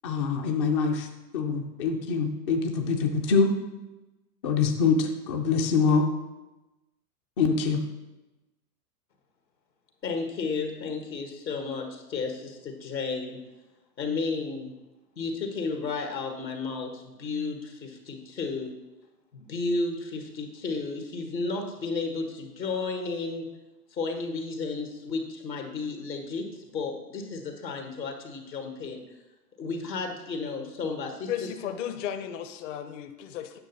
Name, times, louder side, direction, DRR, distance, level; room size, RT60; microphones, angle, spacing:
voice 1, 0.0-1.1 1.3-3.5 4.4-6.1 7.4-7.8, left 5 dB, 20° left, 3 dB, 0.4 m, -24 dB
voice 2, 10.0-13.4 14.0-14.7 15.2-18.7 19.3-23.5 23.9-29.0 29.6-31.5, left 4 dB, 90° left, 3 dB, 1.7 m, -33 dB
voice 3, 31.3-33.6, left 10 dB, 45° left, 9 dB, 0.7 m, -34 dB
9.0 x 6.0 x 4.1 m, 1.1 s
hypercardioid pair, 110°, 49 cm